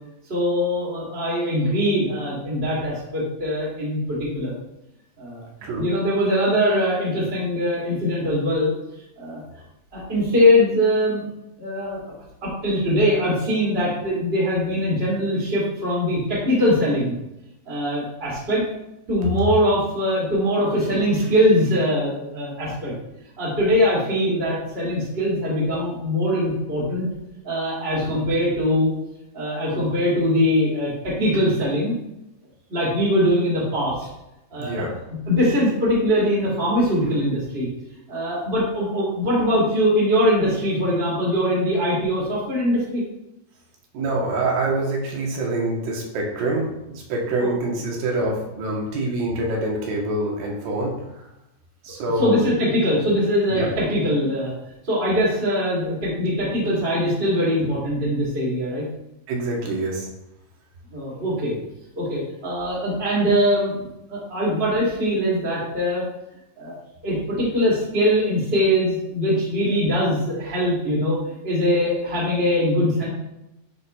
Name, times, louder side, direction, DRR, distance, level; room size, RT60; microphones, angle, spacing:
voice 1, 0.3-4.5 5.2-5.5 5.8-8.7 9.2-9.4 9.9-11.2 11.6-12.0 12.4-17.1 17.7-18.6 19.1-22.9 23.4-27.1 27.4-28.9 29.3-31.9 32.7-34.1 34.5-34.8 35.3-37.7 38.1-43.0 47.4-47.5 52.2-54.5 54.8-58.8 60.9-61.6 62.0-63.7 64.1-66.0 66.6-66.8 67.0-71.2 71.4-73.1, equal, 20° right, -6 dB, 1.9 m, -22 dB
voice 2, 34.6-34.9 43.9-51.0 51.8-52.5 53.5-53.7 59.3-60.1, right 2 dB, 80° right, -1 dB, 2.7 m, -25 dB
10.5 x 4.2 x 2.2 m, 0.89 s
omnidirectional pair, 3.9 m